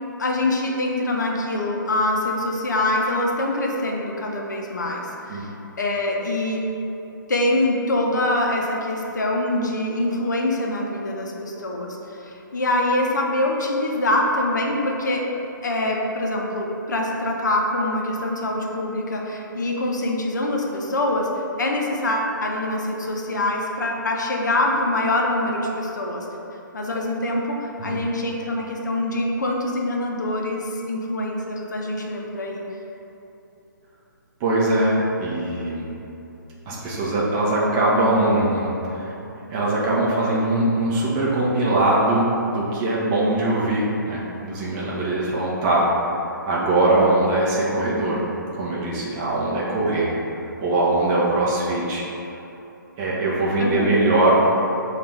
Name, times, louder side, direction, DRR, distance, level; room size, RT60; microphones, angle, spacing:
voice 1, 0.2-6.6 7.3-15.2 15.6-21.3 21.6-26.3 26.7-32.6 53.6-53.9, left 1 dB, 60° left, 0 dB, 0.6 m, -24 dB
voice 2, 34.4-35.9 36.7-39.1 39.5-45.9 46.5-48.2 48.5-50.1 50.6-52.0 53.0-54.4, right 2 dB, 20° right, -6 dB, 0.5 m, -21 dB
4.9 x 2.4 x 3.3 m, 3.0 s
figure-of-eight pair, 130°, 11 cm